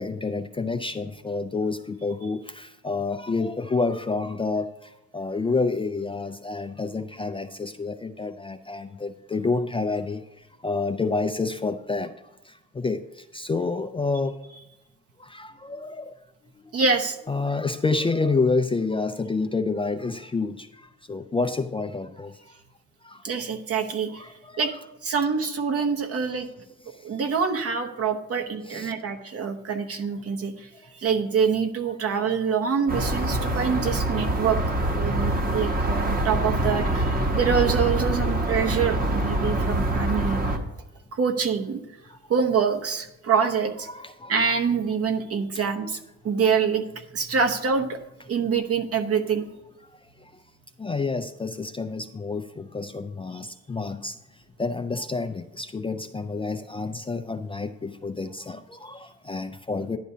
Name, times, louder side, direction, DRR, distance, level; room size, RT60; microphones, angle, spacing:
voice 1, 0.0-4.7 5.1-10.2 10.6-12.1 12.8-13.0 13.3-14.3 15.2-16.1 17.3-20.7 21.1-22.3 23.0-23.2 24.2-24.6 28.7-28.9 32.2-32.4 43.9-44.3 50.8-54.1 54.6-60.0, left 3 dB, 20° left, 8 dB, 0.4 m, -28 dB
voice 2, 16.7-17.2 23.2-24.2 24.6-24.7 25.0-26.5 27.0-30.7 31.0-34.6 34.9-40.6 41.1-41.8 42.3-43.9 44.3-46.0 46.2-48.0 48.3-49.5, right 6 dB, 50° right, 5 dB, 1.0 m, -25 dB
sound 1, 32.9-40.6, right 1 dB, 30° right, 1.1 m, -25 dB
11.0 x 9.3 x 2.8 m, 0.94 s
cardioid pair, 90°, 30 cm